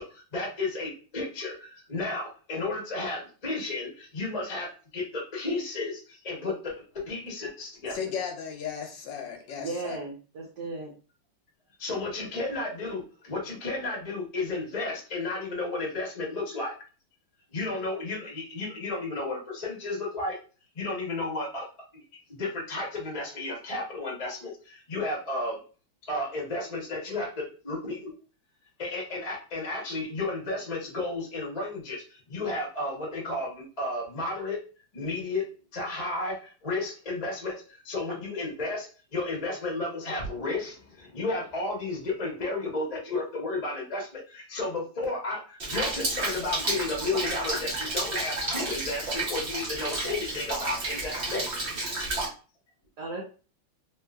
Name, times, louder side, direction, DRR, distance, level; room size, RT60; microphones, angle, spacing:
voice 1, 0.0-4.7 4.9-6.7 7.0-8.0 11.8-16.7 17.5-20.3 20.7-21.6 22.4-25.6 26.1-27.3 27.6-28.0 28.8-32.0 32.3-34.6 34.9-35.4 35.7-37.5 37.8-51.4, left 2 dB, 35° left, -3 dB, 0.6 m, -32 dB
voice 2, 7.9-10.0, left 7 dB, 70° left, 3 dB, 1.1 m, -35 dB
voice 3, 9.6-10.9 53.0-53.3, right 3 dB, 65° right, -2 dB, 1.1 m, -36 dB
Rain, 45.6-52.3, right 2 dB, 90° right, 0.5 m, -31 dB
3.1 x 3.1 x 2.3 m, 0.36 s
omnidirectional pair, 2.4 m